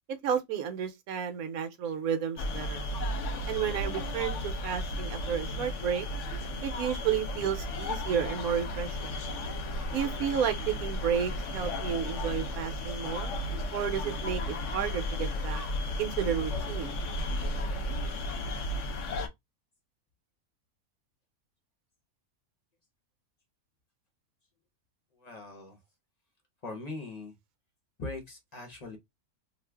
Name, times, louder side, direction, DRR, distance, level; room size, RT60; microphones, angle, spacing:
voice 1, 0.2-2.8 3.5-6.1 6.6-9.1 9.9-13.3 13.7-15.6 16.0-16.9, right 8 dB, 70° right, 1.1 m, -32 dB
sound 1, 2.4-19.3, left 1 dB, 60° left, 0.9 m, -34 dB
voice 2, 25.1-25.8 26.6-27.3 28.0-29.0, left 2 dB, 35° left, 0.7 m, -41 dB
2.5 x 2.4 x 3.3 m
omnidirectional pair, 1.6 m